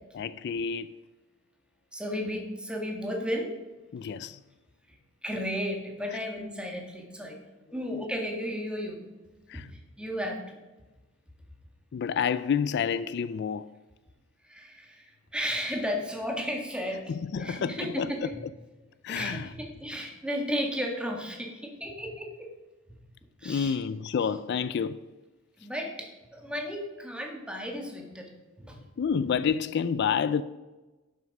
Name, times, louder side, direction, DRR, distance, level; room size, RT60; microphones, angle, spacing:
voice 1, 0.1-1.0 3.9-4.4 6.1-6.2 7.9-8.0 9.5-9.7 11.9-13.7 17.1-18.3 19.0-19.5 23.4-25.0 29.0-30.4, left 7 dB, 55° left, 0.3 m, -29 dB
voice 2, 1.9-3.5 4.9-5.0 5.2-7.4 7.7-9.0 9.5-10.6 14.4-18.4 19.1-22.5 22.9-23.0 23.4-23.8 25.6-28.3 28.6-28.8, equal, 5° right, 1.8 m, -34 dB
12.0 x 6.6 x 5.3 m
head